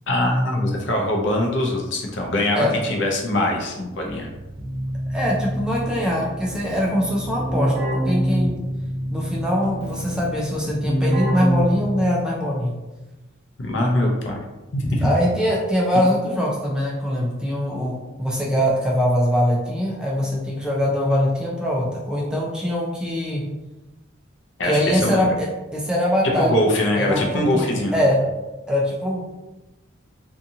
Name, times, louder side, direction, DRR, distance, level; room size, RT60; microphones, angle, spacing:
voice 1, 0.1-4.3 13.6-14.4 14.7-15.1 24.6-25.3 26.4-28.0, left 1 dB, 70° left, 0 dB, 0.6 m, -22 dB
Keyboard (musical), 4.1-12.4, equal, 30° right, 1.0 m, -26 dB
voice 2, 5.1-7.7 8.0-8.6 9.1-12.7 15.0-23.4 24.6-26.5 26.9-28.2 28.7-29.2, equal, 5° right, -4 dB, 0.3 m, -22 dB
2.7 x 2.4 x 2.6 m, 1.1 s
head